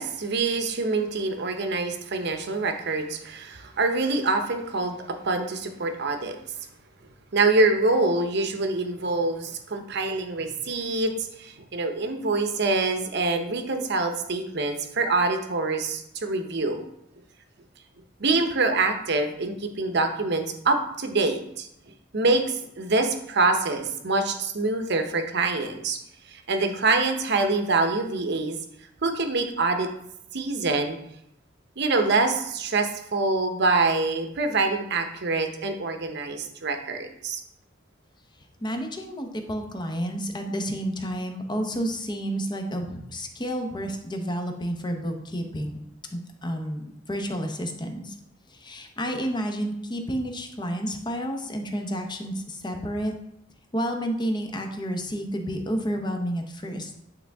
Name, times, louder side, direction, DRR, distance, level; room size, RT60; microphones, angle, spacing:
voice 1, 0.0-6.4 7.3-16.8 18.2-21.7 22.1-26.0 26.3-28.6 29.0-29.9 30.3-31.0 31.8-37.4, right 3 dB, 60° right, 6 dB, 0.8 m, -25 dB
voice 2, 38.6-45.8 46.1-48.2 48.5-53.1 53.7-56.9, equal, 25° left, 4 dB, 0.7 m, -30 dB
8.7 x 3.6 x 3.5 m, 0.78 s
head